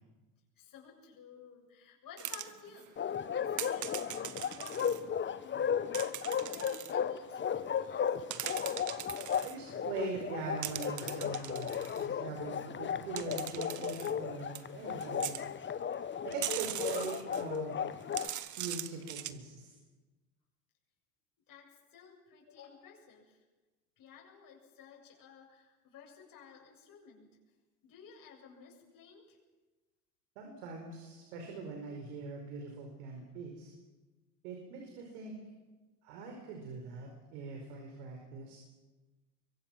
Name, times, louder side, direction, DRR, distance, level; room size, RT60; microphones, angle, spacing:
voice 1, 0.5-5.8 6.5-8.4 21.5-23.4 24.0-27.4 27.8-29.4, left 6 dB, 45° left, 0 dB, 7.8 m, -55 dB
sound 1, 2.2-2.9 3.6-5.0 5.9-6.9 8.1-9.6 10.6-12.1 13.2-14.1 14.6-14.7 15.0-15.4 16.3-17.6 18.0-19.3, right 12 dB, 40° right, 1.4 m, -41 dB
Bark, 3.0-18.3, left 8 dB, 25° left, 1.0 m, -35 dB
voice 2, 9.4-15.4 16.2-17.8 18.6-19.8 30.3-33.7 34.4-35.3 36.0-38.6, right 4 dB, 65° right, 2 dB, 5.0 m, -42 dB
25.0 x 23.5 x 6.0 m, 1.2 s
hypercardioid pair, 80°, 48 cm